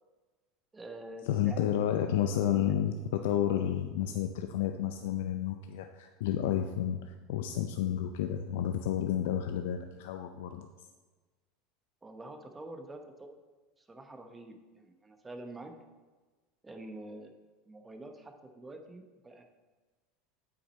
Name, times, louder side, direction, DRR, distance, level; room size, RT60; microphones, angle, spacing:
voice 1, 0.7-2.0 2.4-2.8 12.0-13.4 13.8-15.7 16.6-17.3 17.7-19.4, right 1 dB, 15° right, 5 dB, 1.0 m, -47 dB
voice 2, 1.3-10.7, left 10 dB, 75° left, 6 dB, 0.4 m, -31 dB
8.2 x 6.1 x 4.2 m, 1.3 s
supercardioid pair, 100°, 0 cm